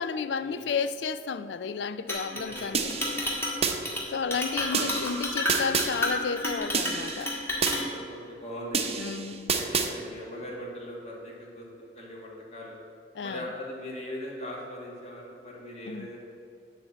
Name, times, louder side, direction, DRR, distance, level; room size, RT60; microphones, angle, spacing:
voice 1, 0.0-3.0 4.1-7.3 9.0-9.5 13.1-13.5 15.9-16.1, left 5 dB, 75° left, 0.4 m, -32 dB
Chink clink, 2.1-2.6 2.9-3.6 3.8-4.0 4.3-7.8, left 1 dB, 15° left, 1.7 m, -30 dB
voice 2, 2.3-3.2 4.7-4.9 7.9-9.0 9.5-11.6 12.0-12.8 13.2-16.2, left 1 dB, 40° left, 2.0 m, -40 dB
sound 1, 2.7-3.8 4.7-5.9 6.7-7.8 8.7-9.9, right 5 dB, 35° right, 0.7 m, -29 dB
9.7 x 4.4 x 7.3 m
head